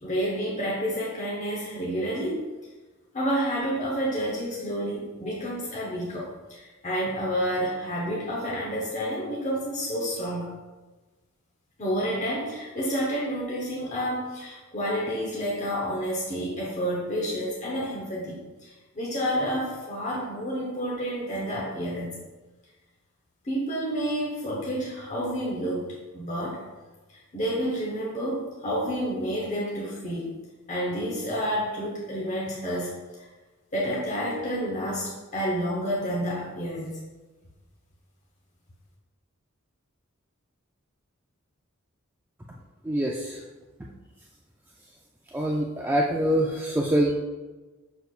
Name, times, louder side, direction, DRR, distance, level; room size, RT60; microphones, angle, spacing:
voice 1, 0.0-2.5 3.1-10.5 11.8-22.1 23.4-26.6 27.1-30.4 30.7-33.3 33.7-37.0, equal, 35° left, -4 dB, 1.0 m, -29 dB
voice 2, 42.8-43.4 45.3-47.1, right 1 dB, 10° right, -2 dB, 0.4 m, -24 dB
6.7 x 6.2 x 2.4 m, 1.2 s
head